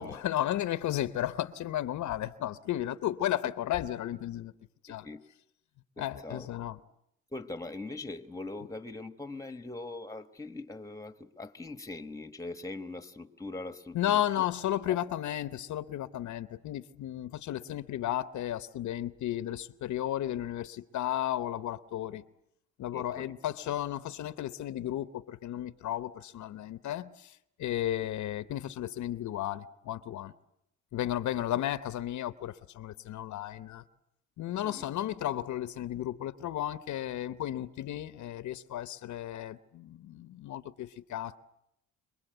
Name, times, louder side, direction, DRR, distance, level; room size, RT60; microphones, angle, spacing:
voice 1, 0.0-4.5 4.8-5.1 6.0-6.8 13.9-22.2 22.8-30.3 30.9-33.8 34.4-41.4, left 12 dB, 70° left, 14 dB, 0.9 m, -34 dB
voice 2, 4.9-5.2 6.0-6.5 7.3-14.4 14.9-15.0 22.9-23.3 34.6-34.9, left 2 dB, 10° left, 11 dB, 1.4 m, -42 dB
26.5 x 21.0 x 8.1 m, 0.79 s
cardioid pair, 90°, 30 cm